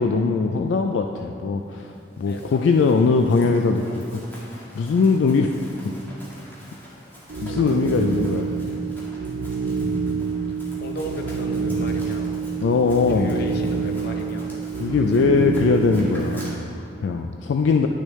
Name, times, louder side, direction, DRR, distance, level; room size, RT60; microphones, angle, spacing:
voice 1, 0.0-5.7 7.4-8.8 12.6-13.4 14.8-17.9, left 4 dB, 85° left, 4 dB, 0.3 m, -21 dB
Run, 1.9-16.5, equal, 10° left, 1.6 m, -46 dB
voice 2, 2.3-2.7 7.3-7.8 9.6-9.8 10.8-12.5 13.1-14.6 15.1-15.2, left 1 dB, 60° left, 4 dB, 0.7 m, -36 dB
sound 1, 7.3-16.5, right 5 dB, 75° right, 0.4 m, -27 dB
10.0 x 6.4 x 3.1 m, 2.6 s
head